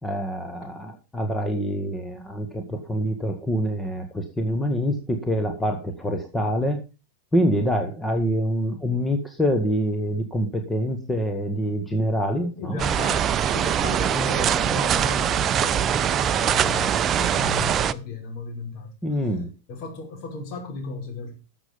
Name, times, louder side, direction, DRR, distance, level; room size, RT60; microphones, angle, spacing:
voice 1, 0.0-6.8 7.3-12.8 19.0-19.5, equal, 10° left, 1.9 m, -25 dB
voice 2, 12.6-19.4 19.7-21.3, left 3 dB, 50° left, 5.5 m, -35 dB
sound 1, 12.8-17.9, right 9 dB, 30° right, 0.6 m, -22 dB
13.0 x 7.5 x 5.3 m
hypercardioid pair, 105°, 0 cm